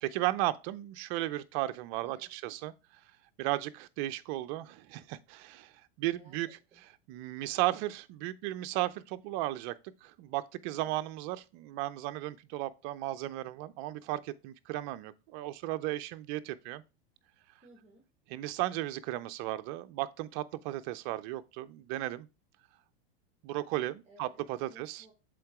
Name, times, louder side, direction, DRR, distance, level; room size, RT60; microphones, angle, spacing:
voice 1, 0.0-2.7 3.4-5.7 6.0-6.5 7.1-9.7 10.0-16.8 18.3-22.3 23.4-25.0, right 16 dB, 50° right, 0.6 m, -35 dB
voice 2, 2.0-2.6 6.1-6.8 10.7-11.0 17.6-18.0 24.0-24.4 24.7-25.1, right 2 dB, 20° right, 1.3 m, -59 dB
7.7 x 3.8 x 3.5 m
supercardioid pair, 120°, 31 cm